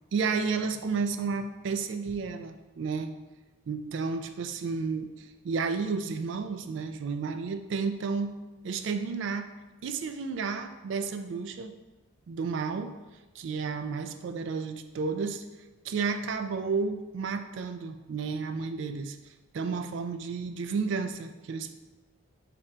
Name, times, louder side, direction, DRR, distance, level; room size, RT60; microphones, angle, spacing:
voice 1, 0.1-3.1 3.7-8.3 8.6-9.5 9.8-11.7 12.3-13.0 13.3-15.4 15.8-19.2 19.5-21.7, right 5 dB, 60° right, 8 dB, 0.3 m, -32 dB
4.2 x 2.5 x 4.4 m, 1.1 s
head